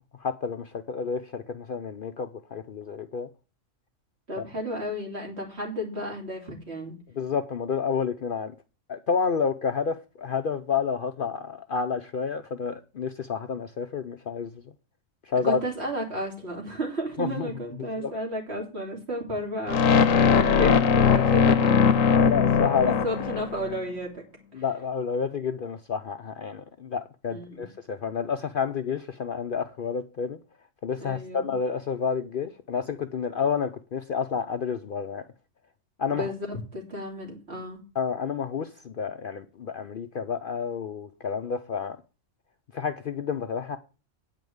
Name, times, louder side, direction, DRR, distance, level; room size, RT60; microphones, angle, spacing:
voice 1, 0.2-3.3 7.2-8.5 8.9-14.5 15.3-15.6 17.2-17.5 18.0-18.1 22.1-23.0 24.5-30.4 30.8-35.3 36.0-36.3 38.0-42.0 42.7-43.8, left 6 dB, 55° left, 0.7 m, -29 dB
voice 2, 4.3-7.0 15.4-21.8 22.8-24.2 24.5-24.6 27.3-27.7 31.0-31.5 36.1-37.8, equal, 55° right, 3.2 m, -33 dB
sound 1, 19.7-23.8, left 6 dB, 85° left, 1.2 m, -20 dB
9.1 x 5.3 x 7.8 m
omnidirectional pair, 1.3 m